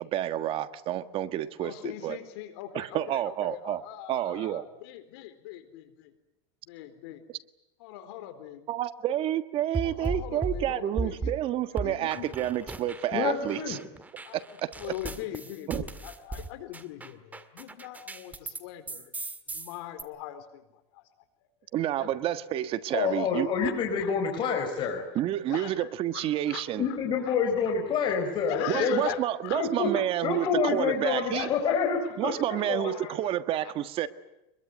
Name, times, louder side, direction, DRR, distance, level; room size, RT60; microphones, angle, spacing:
voice 1, 0.0-2.2 2.7-3.8 4.1-4.6 8.7-13.8 14.3-14.9 15.7-15.8 21.7-23.5 25.1-26.9 28.7-31.5 32.2-34.1, right 12 dB, 40° right, 1.6 m, -29 dB
voice 2, 1.6-6.1 6.7-7.2 7.8-8.6 9.8-11.3 11.7-12.3 14.2-14.4 14.8-19.1 19.5-20.6 22.0-22.1 23.0-23.1 24.0-24.1 25.5-25.9 26.1-26.6 27.3-27.4 28.5-29.6 29.9-30.0 30.4-30.5 31.3-31.8, left 12 dB, 70° left, 4.2 m, -40 dB
sound 1, 9.7-11.4 11.8-13.2 13.4-18.6 18.9-20.0, right 3 dB, 10° right, 1.9 m, -36 dB
voice 3, 13.1-13.8 22.9-25.0 26.8-29.1 29.5-29.9 30.2-32.4 32.7-33.1, left 6 dB, 35° left, 5.1 m, -28 dB
24.5 x 22.0 x 9.4 m
supercardioid pair, 135°, 14 cm